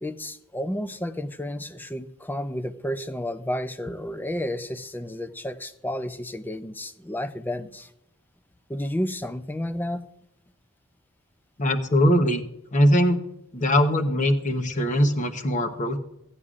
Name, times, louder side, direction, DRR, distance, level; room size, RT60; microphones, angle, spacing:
voice 1, 0.0-7.9 8.7-10.0, left 1 dB, 10° left, 11 dB, 0.5 m, -31 dB
voice 2, 11.6-12.4 12.7-13.2 13.5-16.0, equal, 35° left, 7 dB, 0.9 m, -21 dB
16.5 x 9.6 x 2.5 m, 0.82 s
head